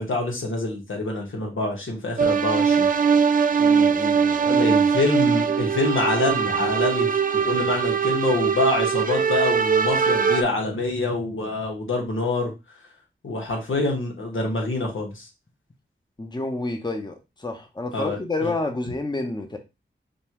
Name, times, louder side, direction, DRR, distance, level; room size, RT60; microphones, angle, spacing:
voice 1, 0.0-2.9 4.4-12.5 13.2-15.3 17.9-18.5, left 2 dB, 80° left, 1.3 m, -26 dB
sound 1, 2.2-10.4, right 6 dB, 45° right, 0.4 m, -21 dB
voice 2, 3.6-4.8 16.2-19.6, left 2 dB, 20° left, 0.9 m, -29 dB
5.2 x 2.4 x 3.0 m
cardioid pair, 50°, 20 cm